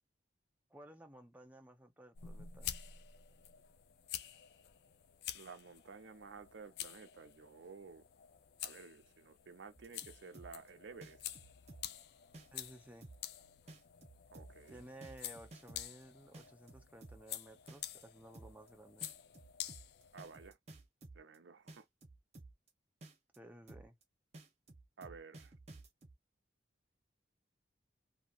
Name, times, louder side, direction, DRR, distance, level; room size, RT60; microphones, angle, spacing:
voice 1, 0.7-2.7 12.5-13.1 14.7-19.1 23.4-24.0, right 1 dB, 10° right, 0.6 m, -56 dB
sound 1, 2.1-20.5, left 10 dB, 60° left, 0.4 m, -49 dB
voice 2, 5.3-8.0 8.6-11.2 14.3-14.8 20.1-20.6 21.1-21.9 25.0-25.5, right 5 dB, 80° right, 0.5 m, -53 dB
sound 2, 9.8-10.7 11.0-12.0 12.3-12.7 13.0-13.4 13.7-16.0 16.3-17.4 17.7-18.0 18.3-18.7 19.0-21.4 21.7-22.7 23.0-23.4 23.7-24.0 24.3-26.1, right 2 dB, 35° right, 0.8 m, -54 dB
2.8 x 2.7 x 2.4 m
head